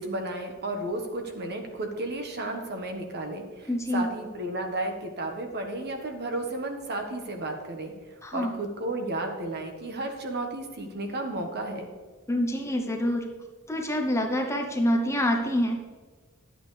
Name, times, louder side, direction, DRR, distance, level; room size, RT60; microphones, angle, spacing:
voice 1, 0.0-7.9 8.3-11.9, right 2 dB, 50° right, 4 dB, 1.3 m, -33 dB
voice 2, 3.7-4.1 8.2-8.5 12.3-13.3 13.7-15.8, equal, 15° left, 3 dB, 0.9 m, -26 dB
11.5 x 8.2 x 3.3 m, 1.4 s
head